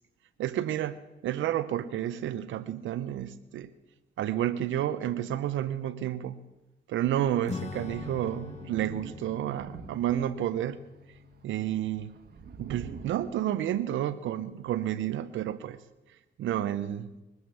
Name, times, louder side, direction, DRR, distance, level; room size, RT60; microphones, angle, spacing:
voice 1, 0.4-3.7 4.2-6.4 6.9-10.8 11.4-12.2 12.6-15.8 16.4-17.1, right 11 dB, 75° right, 0.8 m, -30 dB
Acoustic guitar / Strum, 7.5-13.4, left 4 dB, 35° left, 1.2 m, -44 dB
Thunder, 7.6-10.6 11.1-13.1, right 6 dB, 50° right, 1.6 m, -46 dB
22.5 x 8.1 x 6.9 m
cardioid pair, 90°, 20 cm